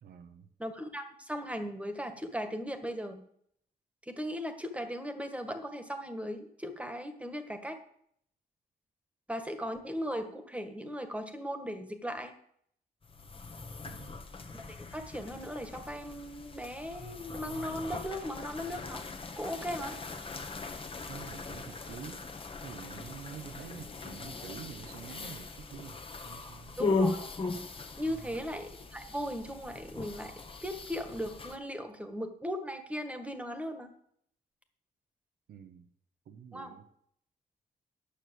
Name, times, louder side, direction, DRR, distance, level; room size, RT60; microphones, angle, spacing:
voice 1, 0.0-0.5 13.9-14.1 21.1-22.3 22.6-26.8 28.0-28.4 35.5-35.9 36.2-36.8, right 7 dB, 80° right, 9 dB, 1.2 m, -47 dB
voice 2, 0.6-3.2 4.1-7.8 9.3-12.3 14.5-19.0 19.4-19.9 26.8-27.2 28.0-30.3 30.6-33.9 36.5-36.8, equal, 10° right, 7 dB, 1.8 m, -38 dB
sound 1, 13.0-31.6, left 3 dB, 35° left, 1.4 m, -39 dB
10.0 x 6.2 x 7.8 m, 0.67 s
cardioid pair, 80°, 16 cm